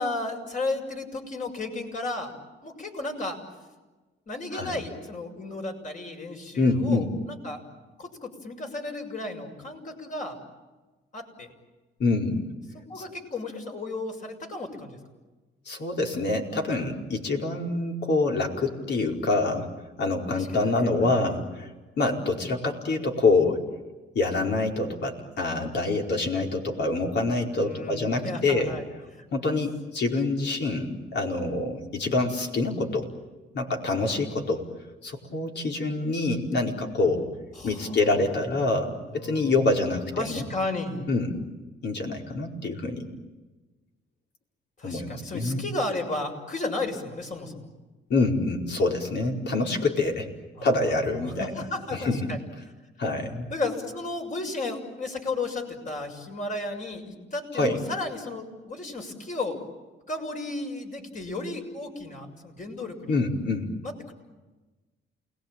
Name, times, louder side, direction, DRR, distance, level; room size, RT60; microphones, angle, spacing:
voice 1, 0.0-2.3 2.6-3.4 4.3-7.6 8.0-10.4 11.1-11.5 12.7-15.0 20.3-21.3 27.6-28.9 29.1-29.6 34.0-34.1 37.5-38.3 39.1-39.5 40.2-41.1 44.8-47.7 50.6-50.7 51.2-52.4 53.5-59.6 60.1-63.2 63.8-64.1, left 2 dB, 40° left, 3 dB, 6.8 m, -34 dB
voice 2, 6.6-7.0 12.0-12.4 15.7-19.7 20.0-21.7 22.0-23.6 24.1-28.7 29.3-33.1 33.5-34.6 35.0-37.3 37.6-40.4 41.1-41.3 41.8-43.1 44.8-45.6 48.1-50.3 50.6-51.6 52.0-52.2 53.0-53.5 57.5-57.8 63.1-63.7, left 2 dB, 60° left, 2 dB, 4.8 m, -26 dB
29.0 x 21.0 x 9.0 m, 1.2 s
cardioid pair, 90°, 20 cm